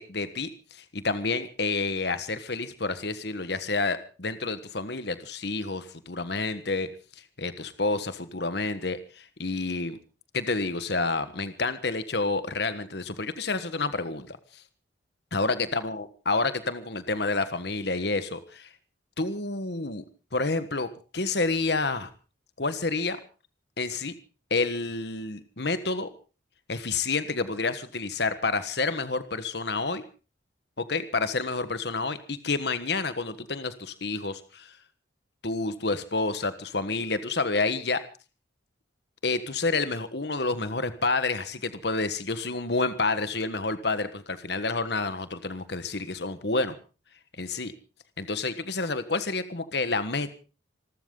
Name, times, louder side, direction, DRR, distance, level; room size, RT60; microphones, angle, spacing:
voice 1, 0.0-6.9 7.4-10.0 10.3-14.6 15.3-18.7 19.2-20.0 20.3-22.1 22.6-23.2 23.8-24.1 24.5-26.1 26.7-30.0 30.8-34.7 35.4-38.0 39.2-46.7 47.4-47.7 48.2-50.3, left 3 dB, 60° left, 11 dB, 1.4 m, -29 dB
27.0 x 13.0 x 3.9 m, 0.35 s
head